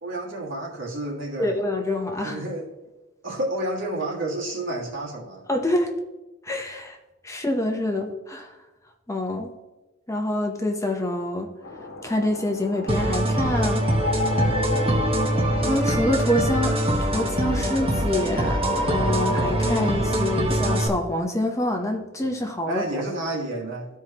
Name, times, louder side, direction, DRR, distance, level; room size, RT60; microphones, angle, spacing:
voice 1, 0.0-1.6 2.2-2.7 3.2-5.4 22.7-23.9, right 1 dB, 65° right, -2 dB, 1.8 m, -30 dB
voice 2, 1.4-2.4 5.5-5.9 6.4-7.0 7.2-8.5 9.1-9.5 10.1-11.5 12.0-13.8 15.7-22.8, left 1 dB, 15° left, 3 dB, 0.8 m, -26 dB
sound 1, 11.6-20.4, left 1 dB, 75° left, 1.2 m, -32 dB
sound 2, 12.9-20.9, right 1 dB, 30° right, 0.9 m, -23 dB
13.5 x 4.7 x 2.9 m, 1.1 s
head